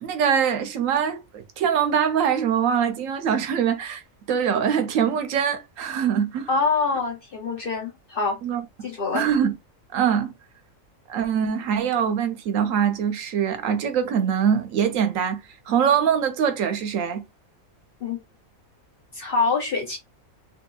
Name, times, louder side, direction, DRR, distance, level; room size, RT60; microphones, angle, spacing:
voice 1, 0.0-1.2 1.6-4.0 4.3-6.5 8.4-8.6 9.1-9.5 9.9-10.3 11.1-15.4 15.7-17.2, right 8 dB, 75° right, 1.0 m, -23 dB
voice 2, 6.5-8.4 8.8-9.3 18.0-18.2 19.1-20.0, left 4 dB, 55° left, 0.6 m, -25 dB
2.7 x 2.6 x 2.3 m
omnidirectional pair, 1.4 m